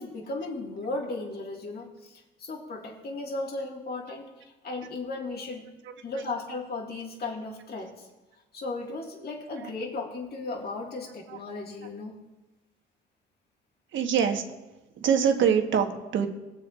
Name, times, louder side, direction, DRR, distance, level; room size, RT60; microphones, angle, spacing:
voice 1, 0.0-4.3 4.6-5.7 6.0-8.1 8.5-12.2, left 3 dB, 50° left, 0 dB, 1.8 m, -35 dB
voice 2, 13.9-14.4 15.0-16.3, right 7 dB, 70° right, 5 dB, 1.2 m, -24 dB
21.5 x 7.5 x 2.5 m, 1.1 s
cardioid pair, 90°, 20 cm